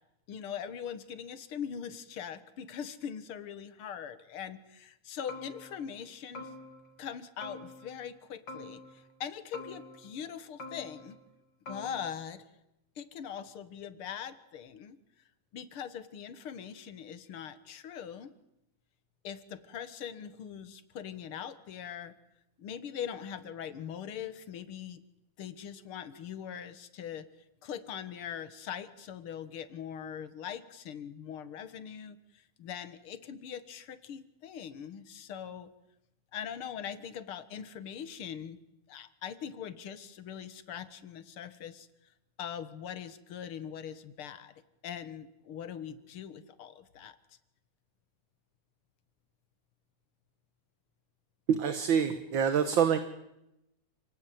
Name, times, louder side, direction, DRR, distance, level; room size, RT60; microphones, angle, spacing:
voice 1, 0.3-6.5 7.0-11.2 11.7-12.4 13.0-15.0 15.5-18.3 19.2-22.1 22.6-25.0 25.4-27.3 27.6-35.7 36.3-38.6 38.9-41.9 42.4-44.5 44.8-47.2, left 8 dB, 85° left, 12 dB, 2.3 m, -41 dB
sound 1, 5.3-6.0 6.4-7.1 7.4-8.2 8.5-9.2 9.5-10.3 10.6-11.3 11.7-12.1, left 2 dB, 55° left, 3.7 m, -46 dB
voice 2, 51.5-53.0, right 7 dB, 65° right, 10 dB, 2.1 m, -26 dB
29.0 x 19.5 x 9.4 m, 0.89 s
omnidirectional pair, 2.3 m